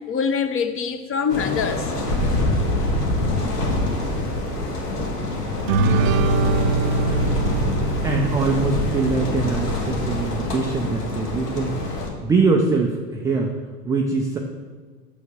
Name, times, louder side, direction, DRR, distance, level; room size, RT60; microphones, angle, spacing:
voice 1, 0.1-1.9 5.0-5.2, left 6 dB, 25° left, 9 dB, 0.8 m, -24 dB
sound 1, 1.3-12.1, left 2 dB, 85° left, 1.6 m, -25 dB
sound 2, 5.7-9.3, right 3 dB, 55° right, 0.7 m, -23 dB
voice 2, 8.0-11.8 12.2-13.5 13.8-14.4, right 4 dB, 10° right, 0 dB, 0.3 m, -22 dB
7.0 x 6.4 x 6.0 m, 1.4 s
hypercardioid pair, 90°, 47 cm